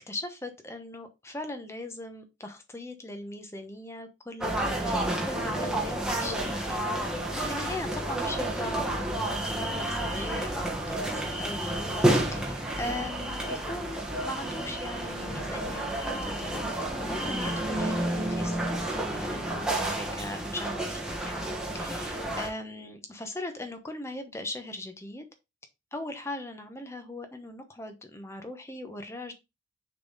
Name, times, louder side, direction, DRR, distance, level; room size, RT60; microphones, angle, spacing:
voice 1, 0.1-6.8 7.4-8.9 9.1-16.6 17.1-25.3 25.9-29.3, left 1 dB, 15° left, 6 dB, 1.0 m, -39 dB
sound 1, 4.4-22.5, right 1 dB, 5° right, 1.2 m, -30 dB
6.5 x 4.1 x 4.0 m, 0.24 s
head